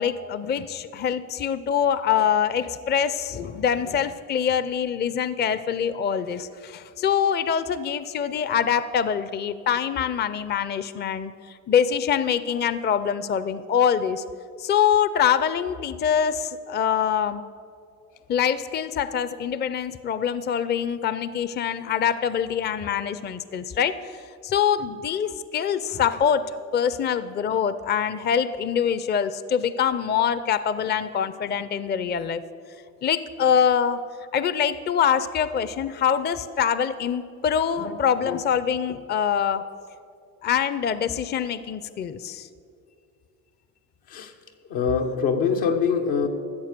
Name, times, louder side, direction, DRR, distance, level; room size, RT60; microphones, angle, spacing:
voice 1, 0.0-14.2 14.6-17.4 18.3-24.2 24.4-32.4 33.0-34.0 34.3-39.6 40.4-42.5, left 8 dB, 30° left, 14 dB, 0.5 m, -24 dB
voice 2, 44.7-46.3, left 6 dB, 85° left, 3 dB, 1.4 m, -23 dB
14.0 x 7.4 x 6.7 m, 2.4 s
supercardioid pair, 85°, 35 cm